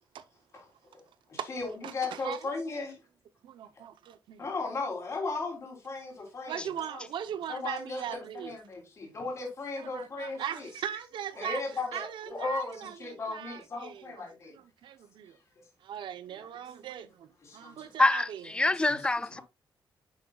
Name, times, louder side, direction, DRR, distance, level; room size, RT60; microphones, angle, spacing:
voice 1, 1.3-3.0 4.4-6.7 7.5-10.7 11.4-14.5 17.4-17.9 18.9-19.0, left 3 dB, 35° left, 3.4 m, -36 dB
voice 2, 1.8-2.5 3.4-4.5 6.5-8.6 9.8-14.1 14.5-15.4 15.8-18.4, right 10 dB, 85° right, 0.8 m, -39 dB
voice 3, 18.0-19.4, left 2 dB, 10° left, 0.3 m, -26 dB
10.5 x 6.3 x 2.4 m
wide cardioid pair, 160°, 8 cm